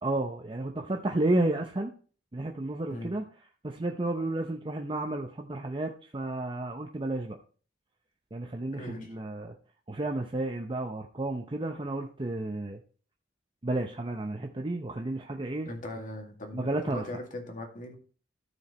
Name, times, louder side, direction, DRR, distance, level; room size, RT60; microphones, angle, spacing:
voice 1, 0.0-1.9 2.3-3.2 3.6-7.4 8.3-9.5 9.9-12.8 13.6-15.7 16.5-17.0, right 2 dB, 25° right, 3 dB, 0.7 m, -32 dB
voice 2, 8.7-9.1 15.7-18.0, left 1 dB, 45° left, 3 dB, 2.2 m, -40 dB
14.0 x 4.8 x 4.2 m, 0.39 s
head